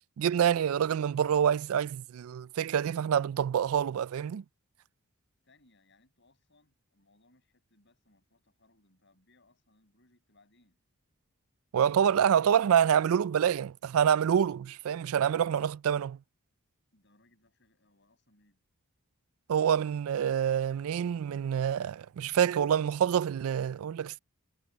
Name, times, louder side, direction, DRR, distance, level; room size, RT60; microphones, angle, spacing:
voice 1, 0.2-4.4 11.7-16.2 19.5-24.2, right 8 dB, 70° right, 0.3 m, -27 dB
voice 2, 5.4-10.8 16.9-18.6, left 2 dB, 50° left, 7.6 m, -67 dB
head